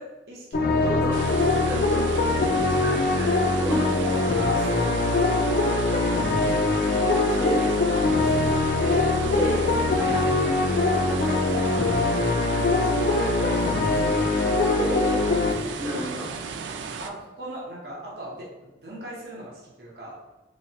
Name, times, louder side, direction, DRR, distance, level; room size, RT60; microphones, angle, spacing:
voice 1, 0.0-1.0 1.4-2.0 2.3-2.5 3.8-3.9 4.3-6.7 6.9-9.1 9.9-11.9 12.4-14.9 15.8-16.0 17.0-20.2, right 1 dB, 60° right, -5 dB, 0.8 m, -39 dB
sound 1, 0.5-15.5, left 2 dB, 50° left, 0.4 m, -23 dB
voice 2, 0.8-2.5 2.8-4.3 7.4-7.7 9.3-9.8 14.7-16.3, equal, 10° right, -8 dB, 1.1 m, -32 dB
sound 2, 1.1-17.1, right 5 dB, 85° right, 0.3 m, -35 dB
3.1 x 3.0 x 2.9 m, 1.1 s
head